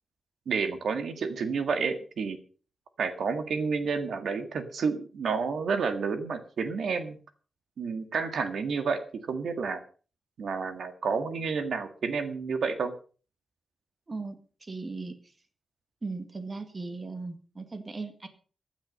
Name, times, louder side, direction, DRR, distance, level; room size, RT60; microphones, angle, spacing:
voice 1, 0.5-2.4 3.0-7.2 7.8-9.8 10.4-12.9, right 5 dB, 80° right, 8 dB, 1.7 m, -30 dB
voice 2, 14.6-15.3 16.0-18.3, right 3 dB, 25° right, 8 dB, 1.9 m, -37 dB
15.5 x 10.0 x 5.3 m, 0.39 s
wide cardioid pair, 170°, 0 cm